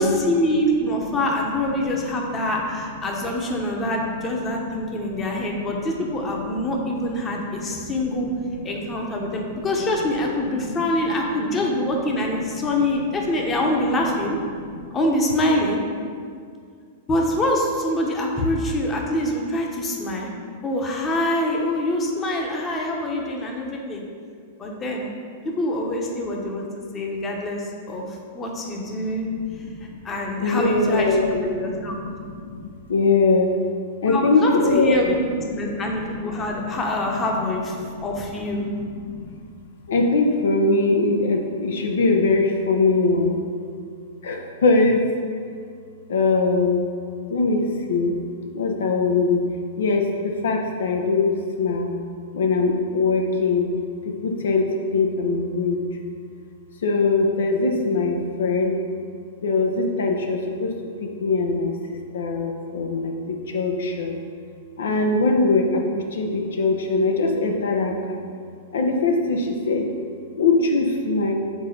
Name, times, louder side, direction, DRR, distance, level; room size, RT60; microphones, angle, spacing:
voice 1, 0.0-8.3 8.6-14.4 14.9-15.8 17.1-20.3 20.6-24.0 24.6-25.1 25.4-26.7 26.9-28.0 28.3-29.3 30.0-31.2 31.5-32.0 34.1-35.2 35.5-38.6, left 1 dB, 20° left, 0 dB, 0.9 m, -25 dB
voice 2, 2.2-2.7 3.6-3.9 4.4-5.9 6.6-6.7 7.0-8.9 9.2-9.7 11.5-11.6 12.5-12.6 14.5-14.9 29.2-30.0 30.4-33.5 34.0-36.7 37.8-38.2 38.6-39.4 39.9-43.4 44.2-45.0 46.1-46.8 47.3-48.2 48.5-49.4 49.8-51.9 52.3-53.7 54.0-55.8 56.8-58.8 59.4-60.7 61.0-64.1 64.8-68.2 68.7-69.9 70.4-71.3, left 3 dB, 80° left, 2 dB, 0.6 m, -23 dB
4.8 x 3.8 x 5.6 m, 2.2 s
hypercardioid pair, 125°, 0 cm